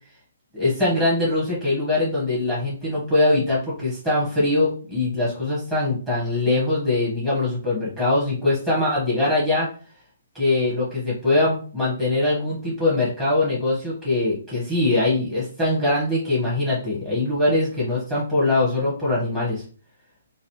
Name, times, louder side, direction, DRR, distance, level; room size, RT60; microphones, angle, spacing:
voice 1, 0.5-9.7 10.3-19.6, left 2 dB, 15° right, -9 dB, 1.2 m, -22 dB
3.1 x 2.5 x 3.1 m, 0.40 s
figure-of-eight pair, 130°, 0 cm